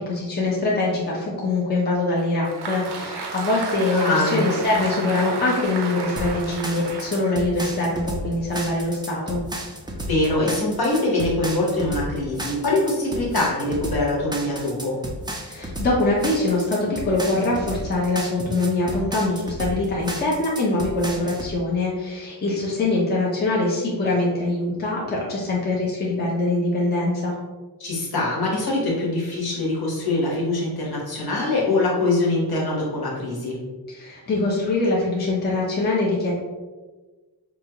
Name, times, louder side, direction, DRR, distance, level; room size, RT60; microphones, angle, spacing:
voice 1, 0.0-9.4 15.4-27.3 33.9-36.3, left 2 dB, 25° left, -5 dB, 0.6 m, -23 dB
Applause, 2.2-8.5, right 4 dB, 75° right, 0.7 m, -33 dB
voice 2, 3.9-4.4 10.1-15.0 27.8-33.6, left 2 dB, 60° left, -4 dB, 1.2 m, -23 dB
sound 1, 6.2-21.5, right 1 dB, 10° right, 0.3 m, -32 dB
4.9 x 2.4 x 2.8 m, 1.3 s
wide cardioid pair, 175°, 41 cm